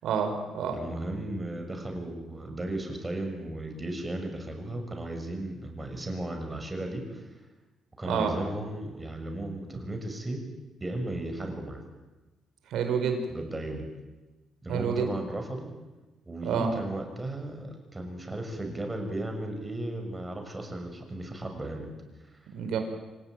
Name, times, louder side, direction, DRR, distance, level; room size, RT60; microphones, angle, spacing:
voice 1, 0.0-0.8 8.0-8.3 12.7-13.2 14.7-15.1 16.4-16.7 22.5-22.8, right 7 dB, 80° right, 6 dB, 5.0 m, -28 dB
voice 2, 0.7-7.3 8.0-10.4 10.8-11.8 13.3-13.9 14.6-15.7 16.2-21.9 22.3-22.4, right 1 dB, 20° right, 4 dB, 6.7 m, -35 dB
26.0 x 18.0 x 9.3 m, 1.1 s
cardioid pair, 90°, 0 cm